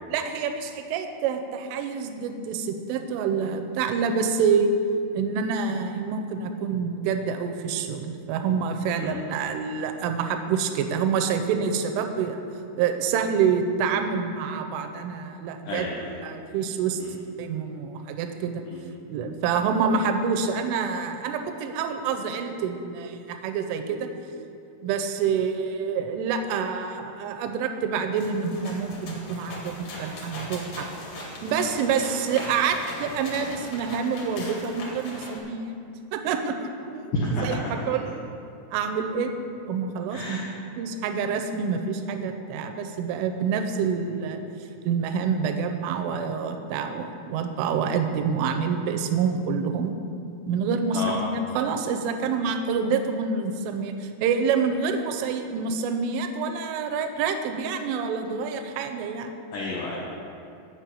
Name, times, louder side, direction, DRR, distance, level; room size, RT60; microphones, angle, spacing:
voice 1, 0.1-4.8 5.1-12.4 12.8-15.9 16.2-17.0 17.4-18.6 19.1-24.1 24.8-30.9 31.4-35.8 36.1-37.6 37.9-38.1 38.7-39.3 39.7-40.4 40.8-44.4 44.8-49.9 50.5-59.3, right 6 dB, 85° right, 6 dB, 3.1 m, -27 dB
voice 2, 15.6-16.1 17.0-17.1 18.7-18.8 37.1-37.6 40.1-40.5 50.9-51.1 59.5-60.0, left 1 dB, 85° left, -4 dB, 1.8 m, -30 dB
sound 1, 28.1-35.4, left 2 dB, 55° left, 1.9 m, -39 dB
8.9 x 5.8 x 8.3 m, 2.6 s
omnidirectional pair, 5.5 m